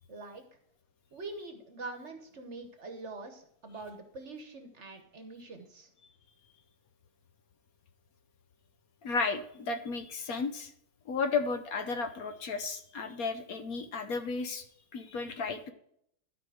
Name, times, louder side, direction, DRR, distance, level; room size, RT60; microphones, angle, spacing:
voice 1, 0.1-0.4 1.1-5.9, right 3 dB, 45° right, 6 dB, 1.3 m, -44 dB
voice 2, 9.0-10.7 11.1-14.6 14.9-15.7, left 4 dB, 65° left, 8 dB, 1.2 m, -33 dB
12.5 x 4.9 x 4.9 m, 0.70 s
omnidirectional pair, 1.8 m